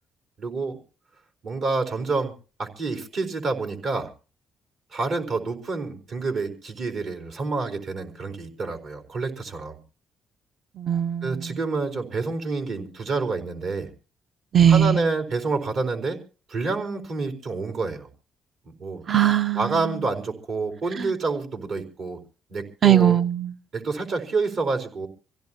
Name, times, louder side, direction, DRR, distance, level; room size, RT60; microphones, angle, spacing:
voice 1, 0.4-0.8 1.4-2.3 2.6-4.1 4.9-9.8 11.2-13.9 14.7-16.2 16.5-18.1 18.7-19.0 19.5-22.2 22.5-23.2 23.7-25.1, right 3 dB, 65° right, 4.4 m, -28 dB
voice 2, 10.8-11.6 14.5-15.0 19.1-19.7 22.8-23.5, right 10 dB, 50° right, 0.7 m, -19 dB
26.0 x 16.0 x 2.9 m
cardioid pair, 90°, 0 cm